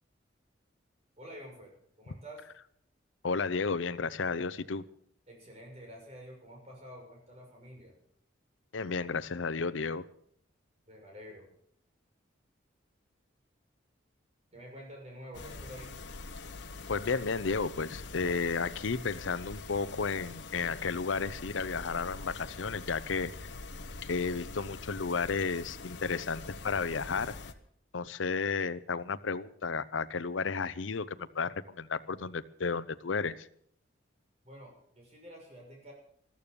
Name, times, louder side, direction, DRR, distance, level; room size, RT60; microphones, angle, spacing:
voice 1, 1.2-2.5 5.3-8.0 10.9-11.5 14.5-16.0 34.4-35.9, equal, 35° right, 0 dB, 6.6 m, -49 dB
voice 2, 3.2-4.9 8.7-10.0 16.9-23.3 24.1-27.3 27.9-33.5, left 4 dB, 85° left, 16 dB, 0.7 m, -33 dB
sound 1, 15.3-27.5, left 3 dB, 70° left, 1.2 m, -44 dB
14.0 x 14.0 x 6.9 m, 0.66 s
head